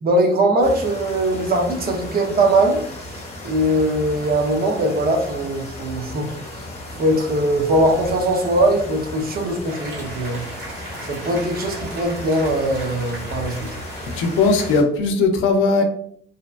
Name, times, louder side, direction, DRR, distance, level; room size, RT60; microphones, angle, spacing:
voice 1, 0.0-2.8 3.4-6.3 7.0-10.5 11.1-13.7, right 1 dB, 50° right, 2 dB, 0.7 m, -20 dB
sound 1, 0.6-14.8, left 1 dB, 35° left, 0.9 m, -35 dB
sound 2, 9.7-14.8, right 2 dB, 85° right, 1.4 m, -37 dB
voice 2, 14.1-15.8, left 3 dB, 90° left, 5 dB, 0.5 m, -18 dB
2.7 x 2.2 x 2.4 m, 0.62 s
cardioid pair, 90°, 20 cm